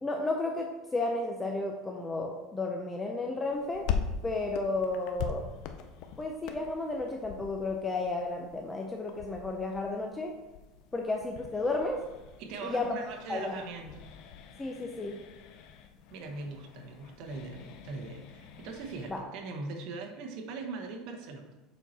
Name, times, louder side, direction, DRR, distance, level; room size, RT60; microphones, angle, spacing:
voice 1, 0.0-3.9 4.2-5.4 6.2-10.3 10.9-12.0 12.6-12.9 13.3-13.6 14.6-15.2 19.1-19.2, left 2 dB, 15° left, 1 dB, 0.6 m, -32 dB
sound 1, 3.5-19.2, left 7 dB, 60° left, 0.7 m, -42 dB
voice 2, 12.4-14.1 16.1-21.5, right 3 dB, 60° right, 3 dB, 1.1 m, -41 dB
7.1 x 4.4 x 4.2 m, 1.1 s
supercardioid pair, 135°, 0 cm